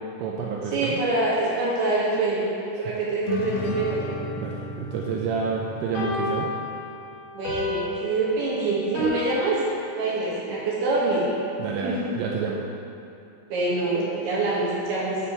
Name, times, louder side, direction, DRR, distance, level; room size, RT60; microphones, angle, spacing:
voice 1, 0.2-1.0 4.4-6.5 11.6-12.6, right 5 dB, 85° right, -2 dB, 2.6 m, -29 dB
voice 2, 0.7-2.5 2.8-4.0 7.3-9.6 10.0-11.2 11.6-12.1 13.5-15.2, right 2 dB, 65° right, -7 dB, 2.9 m, -25 dB
sound 1, 3.3-6.9, left 3 dB, 85° left, 2.5 m, -34 dB
sound 2, 5.9-9.1, equal, 65° left, 4.0 m, -32 dB
9.8 x 4.3 x 5.6 m, 2.7 s
omnidirectional pair, 5.8 m